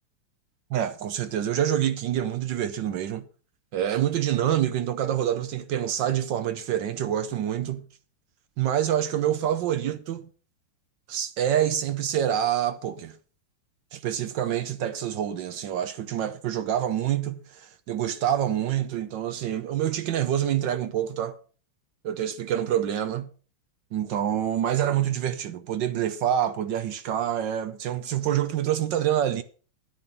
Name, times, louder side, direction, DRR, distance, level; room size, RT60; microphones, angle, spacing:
voice 1, 0.7-3.3 3.7-7.9 8.6-10.3 11.1-13.2 13.9-21.4 22.0-23.3 23.9-29.4, right 10 dB, 70° right, 1.2 m, -26 dB
10.5 x 9.8 x 5.2 m
omnidirectional pair, 2.4 m